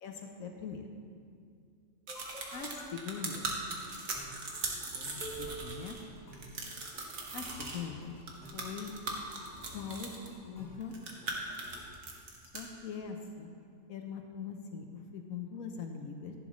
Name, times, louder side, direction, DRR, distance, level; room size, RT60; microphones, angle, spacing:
voice 1, 0.0-0.9 2.5-3.5 4.9-6.0 7.3-8.1 8.5-8.9 9.7-11.0 12.5-13.5 13.9-16.3, left 6 dB, 75° left, 3 dB, 1.2 m, -42 dB
sound 1, 2.1-2.9 3.3-11.8, right 2 dB, 35° left, 3.1 m, -50 dB
sound 2, 2.1-6.0 6.3-7.8 8.3-10.3 10.8-12.6, right 3 dB, 70° right, 1.7 m, -39 dB
14.0 x 11.0 x 3.1 m, 2.4 s
omnidirectional pair, 1.5 m